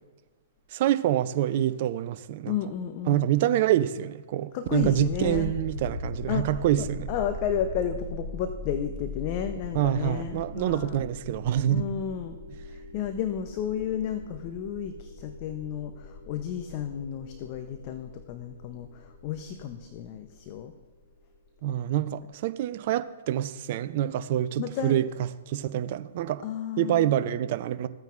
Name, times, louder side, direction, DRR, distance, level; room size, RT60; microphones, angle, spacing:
voice 1, 0.7-2.6 3.1-7.1 9.7-11.9 21.6-25.1 25.5-26.4 26.8-27.9, right 12 dB, 50° right, 0.5 m, -26 dB
voice 2, 2.5-3.3 4.5-5.5 6.3-11.0 11.7-12.4 12.7-20.7 24.6-25.0 26.4-27.1, left 9 dB, 40° left, 0.7 m, -32 dB
sound 1, 4.8-21.7, left 2 dB, 55° left, 1.6 m, -41 dB
15.0 x 9.1 x 2.5 m
figure-of-eight pair, 120°, 0 cm